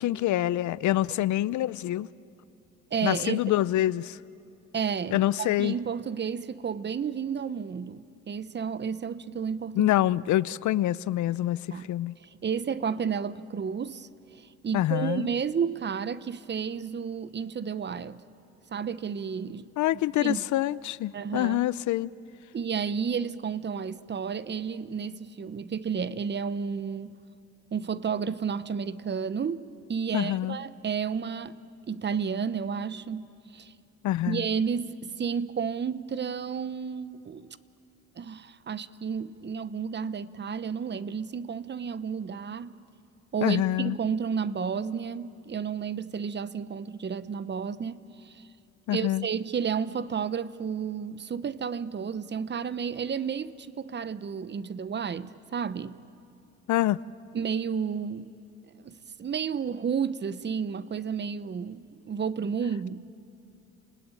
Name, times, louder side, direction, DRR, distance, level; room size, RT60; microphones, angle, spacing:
voice 1, 0.0-2.1 3.0-4.2 5.1-5.8 9.8-12.1 14.7-15.3 19.8-22.1 30.1-30.6 34.0-34.4 43.4-44.0 48.9-49.3 56.7-57.0, left 14 dB, 75° left, 0.6 m, -26 dB
voice 2, 2.9-3.4 4.7-9.9 11.7-11.9 12.2-18.2 18.7-19.7 20.2-20.4 21.1-21.7 22.5-27.1 27.7-31.6 31.9-33.7 34.3-37.5 38.2-42.7 43.3-48.4 48.9-56.0 57.3-58.3 58.8-63.0, right 6 dB, 35° right, 0.9 m, -32 dB
30.0 x 20.0 x 9.1 m
cardioid pair, 90°, 30 cm